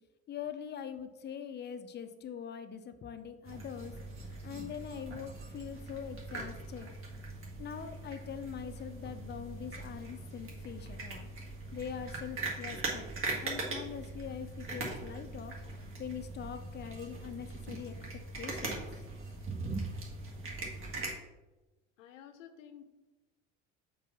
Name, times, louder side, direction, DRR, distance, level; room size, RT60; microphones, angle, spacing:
voice 1, 0.3-3.9 4.4-6.9 7.6-11.3 11.7-13.0 13.4-15.7 16.0-18.0 18.4-18.8, left 8 dB, 25° left, 9 dB, 0.6 m, -43 dB
sound 1, 3.4-21.1, right 2 dB, 35° right, 1.6 m, -41 dB
voice 2, 22.0-22.8, left 9 dB, 75° left, 8 dB, 0.7 m, -52 dB
7.1 x 2.7 x 5.4 m, 1.1 s
hypercardioid pair, 70°, 38 cm